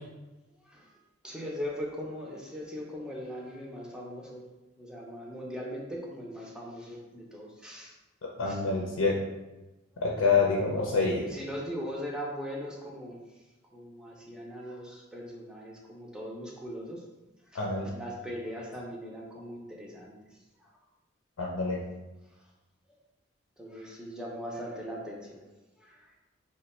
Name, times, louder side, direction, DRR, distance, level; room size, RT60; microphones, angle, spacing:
voice 1, 1.2-4.4 4.8-7.9 8.5-8.6 10.7-10.9 11.2-13.2 13.7-17.0 17.5-17.6 17.9-20.2 23.6-25.4 25.8-26.0, equal, 5° right, -3 dB, 0.5 m, -39 dB
voice 2, 8.4-9.1 10.0-11.2 17.5-17.9 21.4-21.8, left 4 dB, 85° left, -2 dB, 0.5 m, -26 dB
3.0 x 2.2 x 4.1 m, 1.1 s
head